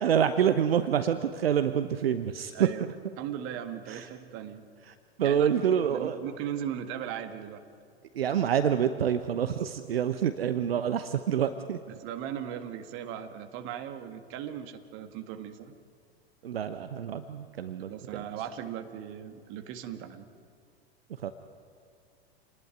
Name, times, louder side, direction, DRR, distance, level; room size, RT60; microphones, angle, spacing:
voice 1, 0.0-2.5 3.9-4.0 5.2-6.2 8.1-11.8 16.4-17.9 21.2-21.3, right 8 dB, 65° right, 10 dB, 1.0 m, -27 dB
voice 2, 2.5-2.9 3.2-4.7 5.2-7.6 11.9-15.7 17.9-20.3, right 10 dB, 40° right, 8 dB, 1.9 m, -38 dB
28.0 x 19.5 x 9.3 m, 2.3 s
figure-of-eight pair, 95°, 32 cm